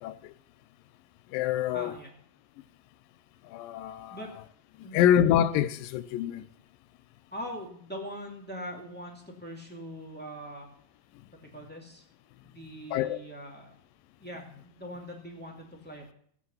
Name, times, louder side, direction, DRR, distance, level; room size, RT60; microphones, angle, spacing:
voice 1, 0.0-0.3 1.3-2.0 3.4-4.2 4.8-6.4 12.9-13.2, left 10 dB, 85° left, 2.4 m, -26 dB
voice 2, 1.7-2.1 4.1-4.3 4.8-5.1 7.3-10.7 11.4-12.0 12.4-13.7 14.2-16.1, equal, 5° left, 1.5 m, -42 dB
15.5 x 8.6 x 5.6 m
omnidirectional pair, 4.0 m